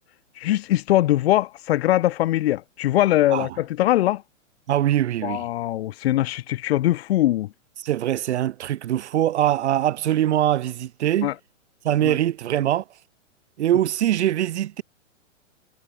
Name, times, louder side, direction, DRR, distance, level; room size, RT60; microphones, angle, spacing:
voice 1, 0.4-4.2 5.2-7.5 11.2-11.3 12.0-12.2, left 14 dB, 50° left, 2.3 m, -21 dB
voice 2, 4.7-5.4 7.8-11.3 11.8-12.8 13.6-14.8, right 12 dB, 60° right, 3.5 m, -22 dB
hypercardioid pair, 145°, 39 cm